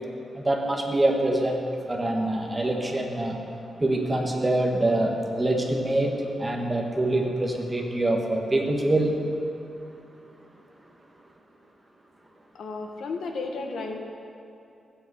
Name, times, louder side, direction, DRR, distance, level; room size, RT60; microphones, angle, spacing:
voice 1, 0.3-1.6 1.9-3.4 3.8-6.1 6.4-9.1, right 1 dB, 15° right, 1 dB, 1.5 m, -25 dB
voice 2, 12.5-14.0, left 3 dB, 75° left, 2 dB, 1.5 m, -33 dB
16.0 x 7.9 x 8.1 m, 2.7 s
wide cardioid pair, 155°, 0 cm